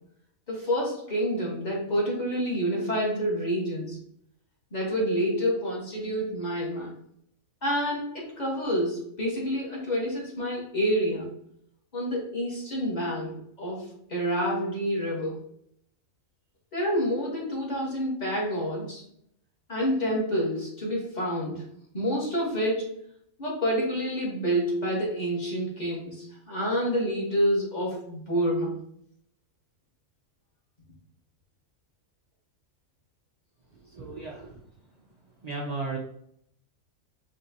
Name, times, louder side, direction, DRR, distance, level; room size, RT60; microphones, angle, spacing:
voice 1, 0.5-4.0 4.7-6.9 7.6-11.3 11.9-15.4 16.7-19.0 19.7-21.6 21.9-23.0 23.4-28.8, equal, 30° left, -4 dB, 1.3 m, -28 dB
voice 2, 33.9-34.6 35.4-36.0, right 3 dB, 80° right, -4 dB, 0.3 m, -34 dB
4.3 x 3.1 x 2.7 m, 0.70 s
omnidirectional pair, 1.5 m